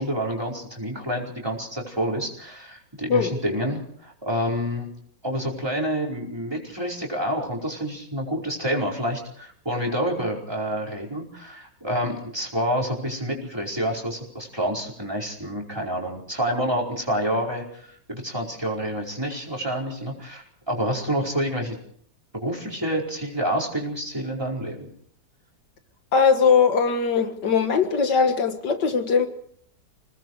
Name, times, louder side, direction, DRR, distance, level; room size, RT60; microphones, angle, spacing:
voice 1, 0.0-4.9 5.2-21.8 22.3-24.9, equal, 15° right, 4.9 m, -28 dB
voice 2, 26.1-29.3, left 5 dB, 80° left, 2.3 m, -20 dB
28.0 x 19.5 x 4.8 m
omnidirectional pair, 1.8 m